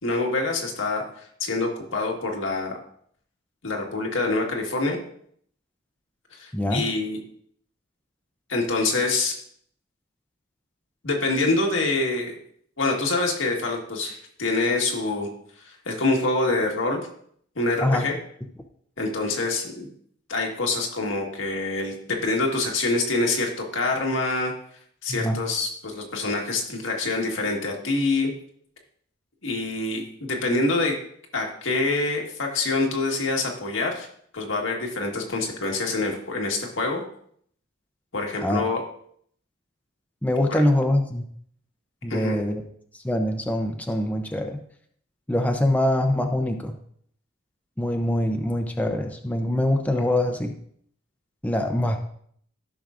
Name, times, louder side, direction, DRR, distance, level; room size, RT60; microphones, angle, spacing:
voice 1, 0.0-1.0 1.4-2.7 3.6-5.0 6.3-7.2 8.5-9.4 11.0-12.3 12.8-15.3 15.8-17.1 17.5-18.1 19.0-19.9 20.3-24.5 25.0-28.3 29.4-31.0 31.3-34.1 34.3-37.0 38.1-38.8 40.5-40.6 42.1-42.4, left 2 dB, 85° left, 1 dB, 1.7 m, -25 dB
voice 2, 6.5-6.9 17.8-18.0 25.1-25.4 38.4-38.6 40.2-41.2 42.0-42.6 43.0-44.6 45.3-46.7 47.8-50.5 51.4-52.0, left 1 dB, 10° left, 4 dB, 0.6 m, -24 dB
13.5 x 6.2 x 2.5 m, 0.64 s
head